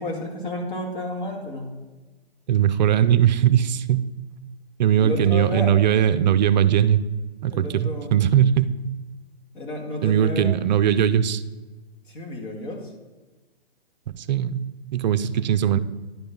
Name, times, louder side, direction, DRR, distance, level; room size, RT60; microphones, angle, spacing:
voice 1, 0.0-1.7 5.0-5.8 7.5-8.1 9.5-10.5 12.1-12.9, left 2 dB, 50° left, 1 dB, 2.1 m, -31 dB
voice 2, 2.5-4.1 4.8-7.0 7.4-8.7 10.0-11.4 14.1-14.7 14.9-15.8, right 10 dB, 45° right, 11 dB, 0.5 m, -20 dB
10.5 x 4.4 x 5.3 m, 1.2 s
hypercardioid pair, 135°, 32 cm